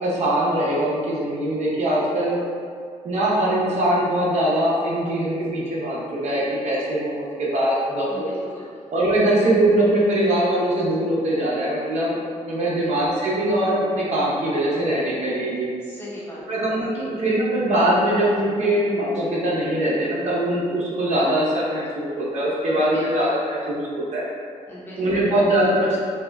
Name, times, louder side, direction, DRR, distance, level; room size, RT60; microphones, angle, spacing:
voice 1, 0.0-2.4 3.0-8.3 8.9-12.2 12.4-15.7 16.5-24.2 25.0-26.0, right 1 dB, 60° right, -6 dB, 0.7 m, -22 dB
voice 2, 8.1-8.7 12.8-12.9 15.8-16.4 22.7-23.1 24.7-25.3, left 1 dB, 15° left, -9 dB, 0.8 m, -38 dB
2.7 x 2.1 x 3.3 m, 2.1 s
cardioid pair, 115°, 13 cm